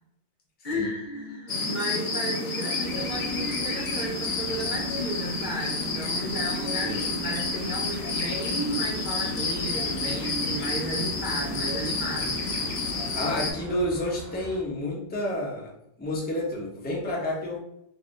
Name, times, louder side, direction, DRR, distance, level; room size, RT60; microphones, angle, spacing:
voice 1, 0.6-12.4, equal, 55° left, -2 dB, 0.6 m, -33 dB
sound 1, 0.7-12.8, right 2 dB, 20° right, 0.8 m, -43 dB
sound 2, 1.5-13.5, left 3 dB, 75° left, 0.9 m, -30 dB
sound 3, 2.7-14.6, right 1 dB, 70° right, 0.8 m, -44 dB
voice 2, 13.1-15.7 16.0-17.6, left 1 dB, 10° left, -3 dB, 0.5 m, -30 dB
2.5 x 2.5 x 3.5 m, 0.77 s
omnidirectional pair, 1.1 m